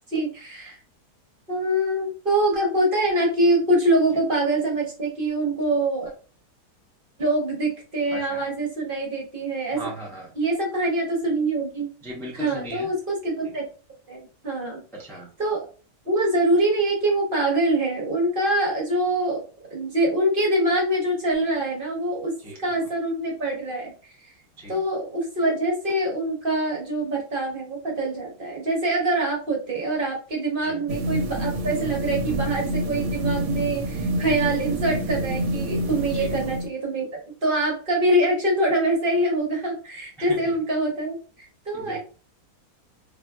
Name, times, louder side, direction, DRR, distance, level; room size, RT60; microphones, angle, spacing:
voice 1, 0.1-0.8 1.5-6.1 7.2-9.8 10.4-11.9 12.3-13.6 14.1-14.8 15.4-15.7 16.0-19.4 19.7-22.3 22.6-24.3 24.7-37.1 37.4-42.0, right 1 dB, 45° right, -1 dB, 0.8 m, -24 dB
voice 2, 8.1-8.4 9.7-10.3 12.0-12.9 13.4-13.5 14.9-15.3 22.4-22.6 24.6-24.8 30.6-30.8 36.1-36.4 40.2-40.5 41.7-42.0, right 1 dB, 5° left, -3 dB, 0.3 m, -38 dB
sound 1, 30.9-36.7, right 1 dB, 70° right, 1.0 m, -27 dB
3.3 x 2.5 x 2.2 m, 0.36 s
omnidirectional pair, 1.6 m